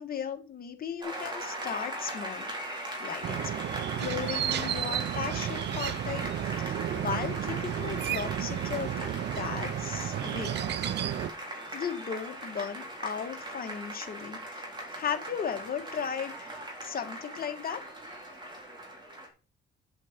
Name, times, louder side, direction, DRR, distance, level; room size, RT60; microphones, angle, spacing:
voice 1, 0.0-3.4 4.0-6.3 6.6-10.6 11.7-14.7 14.9-17.8, left 7 dB, 50° left, 5 dB, 1.6 m, -36 dB
Applause, 1.0-19.3, right 1 dB, 20° right, 4.1 m, -39 dB
sound 1, 3.2-11.3, right 11 dB, 60° right, 0.6 m, -32 dB
7.7 x 7.7 x 4.5 m, 0.35 s
cardioid pair, 90°, 20 cm